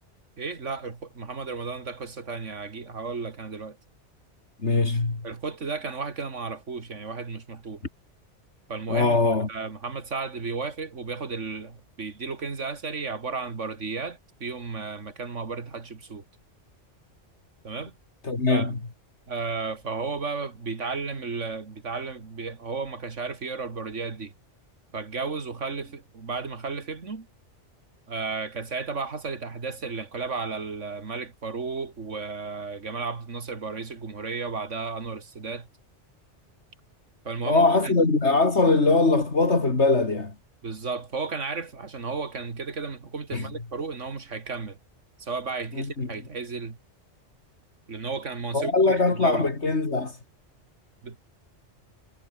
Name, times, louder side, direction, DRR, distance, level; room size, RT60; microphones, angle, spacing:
voice 1, 0.4-3.8 5.2-7.8 8.7-16.2 17.6-17.9 18.5-18.7 19.3-24.3 24.9-27.3 28.1-35.7 37.2-37.9 40.6-44.8 45.2-46.8 47.9-49.5 51.0-51.2, right 4 dB, 85° right, 2.6 m, -33 dB
voice 2, 4.6-5.2 8.9-9.5 18.2-18.8 37.4-40.3 43.3-43.5 45.7-46.1 48.5-50.2, left 3 dB, 70° left, 3.4 m, -22 dB
omnidirectional pair, 1.2 m